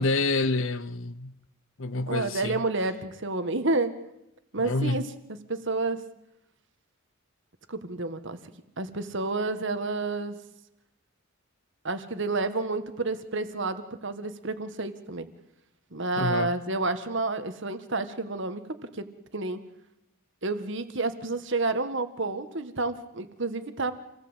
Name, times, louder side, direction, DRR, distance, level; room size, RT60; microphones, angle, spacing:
voice 1, 0.0-1.3 1.8-2.6 4.6-5.1 16.2-16.6, left 3 dB, 65° left, 0.9 m, -28 dB
voice 2, 2.1-3.9 4.5-5.1 5.5-6.0 7.7-8.4 8.8-10.4 11.8-15.3 15.9-19.0 19.3-19.6 20.4-23.9, right 3 dB, 60° right, 1.8 m, -30 dB
27.5 x 18.0 x 8.3 m
head